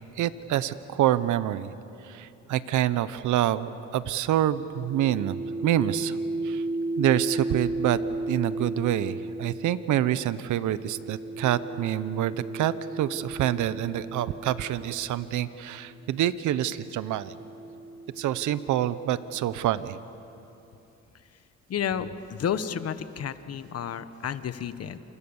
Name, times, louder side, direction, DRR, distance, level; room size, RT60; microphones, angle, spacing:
voice 1, 0.2-1.7 2.0-6.2 6.4-6.6 7.0-8.0 8.3-17.4 18.2-20.0, right 12 dB, 80° right, 14 dB, 0.9 m, -27 dB
sound 1, 4.7-15.1 16.0-19.7, right 2 dB, 30° right, 0.9 m, -35 dB
voice 2, 21.7-25.0, left 8 dB, 55° left, 11 dB, 1.4 m, -31 dB
29.0 x 28.5 x 7.2 m, 3.0 s
cardioid pair, 95°, 30 cm